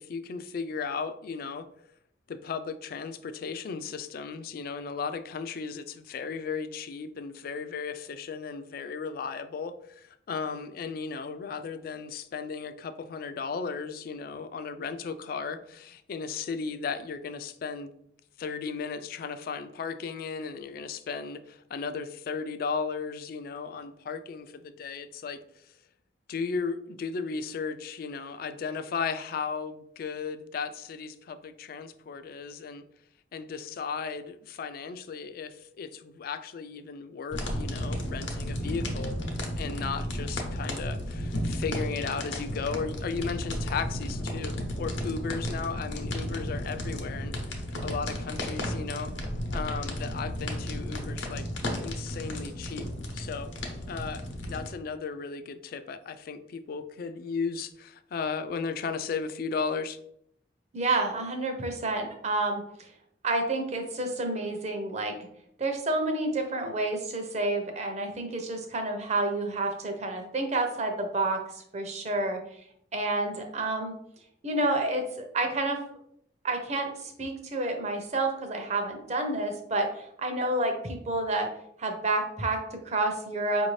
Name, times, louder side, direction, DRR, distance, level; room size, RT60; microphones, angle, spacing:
voice 1, 0.0-1.7 2.3-17.9 18.4-25.7 26.3-32.8 33.3-39.2 39.6-49.1 49.5-51.5 51.8-52.9 53.1-53.5 53.9-60.0, left 5 dB, 55° left, 11 dB, 0.3 m, -35 dB
sound 1, 37.3-54.7, equal, 80° left, 0.8 m, -33 dB
voice 2, 60.7-62.9 63.2-65.2 65.6-72.4 72.9-74.0 74.4-75.8 76.4-81.5 81.8-83.7, right 2 dB, 40° right, 4 dB, 0.7 m, -29 dB
4.8 x 2.6 x 3.1 m, 0.71 s
head